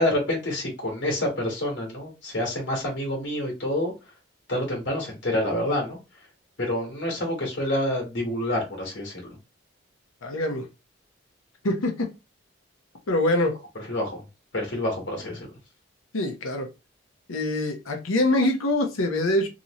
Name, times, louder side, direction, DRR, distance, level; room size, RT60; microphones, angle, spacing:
voice 1, 0.0-3.9 4.5-6.0 6.6-9.4 13.9-14.2 14.5-15.5, left 1 dB, 55° left, 1.4 m, -27 dB
voice 2, 10.2-10.7 11.6-12.1 13.1-13.6 16.1-16.7 17.3-19.5, left 1 dB, 90° left, 0.8 m, -24 dB
3.0 x 2.7 x 2.9 m
head